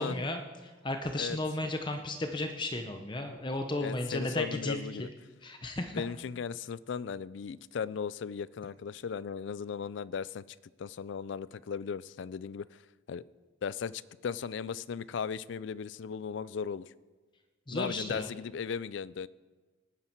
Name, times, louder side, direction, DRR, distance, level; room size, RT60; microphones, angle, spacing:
voice 1, 0.0-5.1 5.4-6.0 17.7-18.3, left 2 dB, 25° left, 0.7 m, -34 dB
voice 2, 3.8-5.1 5.9-10.4 10.8-12.8 13.1-13.2 13.6-16.9 17.7-19.3, left 6 dB, 65° left, 0.4 m, -37 dB
18.0 x 9.6 x 4.5 m
head